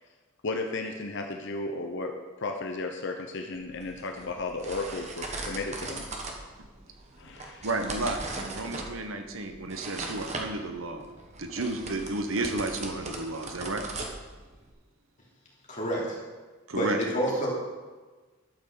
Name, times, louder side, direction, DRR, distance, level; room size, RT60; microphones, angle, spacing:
voice 1, 0.4-6.0 7.2-7.7, left 3 dB, 55° left, 3 dB, 0.9 m, -34 dB
sound 1, 3.5-14.7, right 2 dB, 30° right, 1.4 m, -39 dB
voice 2, 7.6-11.1 11.4-13.9 16.7-17.0, right 2 dB, 70° right, 6 dB, 1.2 m, -32 dB
voice 3, 15.7-16.2 16.7-17.5, equal, 35° left, -5 dB, 3.3 m, -28 dB
12.0 x 6.2 x 6.9 m, 1.3 s
head